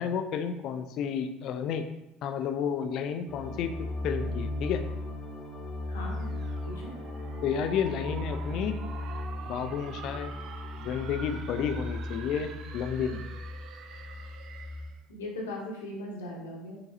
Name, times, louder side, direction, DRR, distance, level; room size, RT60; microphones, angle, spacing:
voice 1, 0.0-1.9 2.2-4.8 7.4-8.8 9.5-10.3 10.8-13.2, left 7 dB, 50° left, 7 dB, 0.4 m, -31 dB
sound 1, 3.3-14.9, left 2 dB, 25° left, 0.9 m, -37 dB
voice 2, 5.9-6.3 6.6-6.9 15.1-16.8, left 1 dB, 70° left, -2 dB, 0.9 m, -38 dB
sound 2, 6.1-15.0, right 6 dB, 45° right, 0.4 m, -46 dB
5.7 x 3.1 x 2.7 m, 0.86 s
figure-of-eight pair, 65°, 0 cm